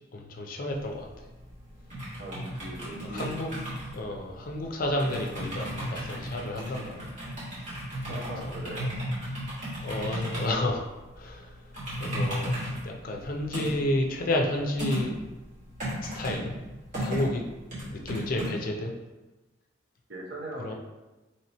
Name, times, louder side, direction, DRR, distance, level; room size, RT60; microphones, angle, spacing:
voice 1, 0.1-1.1 3.1-3.5 3.9-7.1 8.0-8.2 8.4-8.5 9.8-10.8 11.2-11.5 12.0-12.5 12.8-15.2 16.0-16.5 17.0-17.4 17.8-18.9 20.6-20.7, left 1 dB, 45° left, 1 dB, 0.4 m, -31 dB
sound 1, 0.7-18.5, equal, 40° right, 1.3 m, -35 dB
voice 2, 2.2-3.3 8.1-8.9 20.1-20.7, right 1 dB, 55° right, -4 dB, 0.9 m, -39 dB
3.0 x 2.9 x 4.0 m, 1.1 s
head